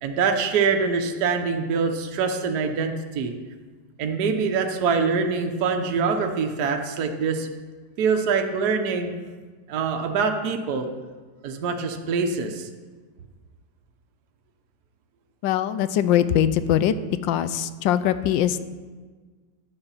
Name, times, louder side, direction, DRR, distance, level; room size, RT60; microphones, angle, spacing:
voice 1, 0.0-3.3 4.0-7.5 8.0-9.1 9.7-10.9 11.4-12.7, right 5 dB, 60° right, 4 dB, 1.3 m, -24 dB
voice 2, 15.4-16.9 17.2-18.6, left 10 dB, 75° left, 13 dB, 1.2 m, -22 dB
10.5 x 8.0 x 5.6 m, 1.4 s
omnidirectional pair, 2.1 m